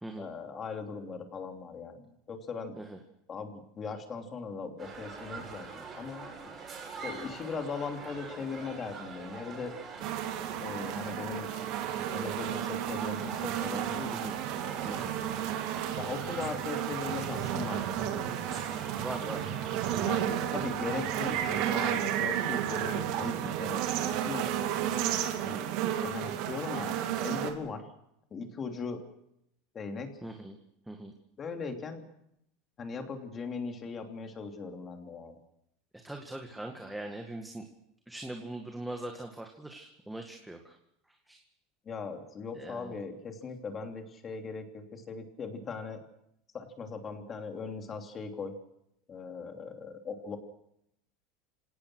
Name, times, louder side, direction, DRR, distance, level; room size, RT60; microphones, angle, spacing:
voice 1, 0.2-2.8 3.3-6.5 7.0-9.7 10.6-11.5 12.1-14.3 16.0-18.2 20.0-23.8 24.2-24.5 25.4-27.8 28.3-29.0 29.7-30.1 31.4-32.0 32.8-35.4 41.8-46.0 46.5-48.5 49.1-50.4, left 5 dB, 25° left, 5 dB, 3.0 m, -39 dB
sound 1, 4.8-21.8, right 5 dB, 25° right, 6.8 m, -44 dB
sound 2, 10.0-27.5, right 10 dB, 60° right, 2.7 m, -32 dB
voice 2, 14.1-14.4 14.8-15.1 19.0-19.5 30.2-30.6 30.9-31.1 36.0-37.6 38.1-40.8 41.3-41.4 42.5-43.0, right 1 dB, 5° right, 3 dB, 1.9 m, -41 dB
27.5 x 17.5 x 6.3 m, 0.78 s
supercardioid pair, 135°, 0 cm